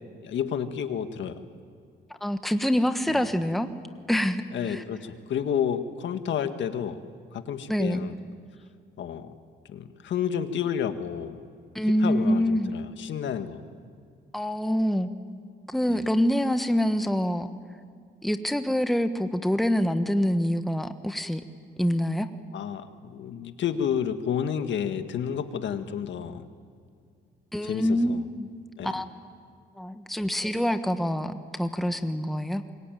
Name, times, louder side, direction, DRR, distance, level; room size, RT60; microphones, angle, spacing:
voice 1, 0.2-1.3 3.1-3.2 4.5-7.0 7.3-8.1 9.0-9.3 9.7-11.4 12.0-13.6 15.9-16.0 22.5-26.4 27.6-28.2 28.8-28.9, left 8 dB, 70° left, 8 dB, 1.8 m, -30 dB
voice 2, 2.2-3.7 4.1-4.8 7.7-8.1 11.7-12.8 14.3-15.1 15.7-17.5 18.2-21.4 21.8-22.3 27.5-28.5 28.8-29.1 29.8-32.6, equal, ahead, 8 dB, 1.3 m, -26 dB
26.0 x 23.0 x 9.3 m, 2.2 s
cardioid pair, 90°, 20 cm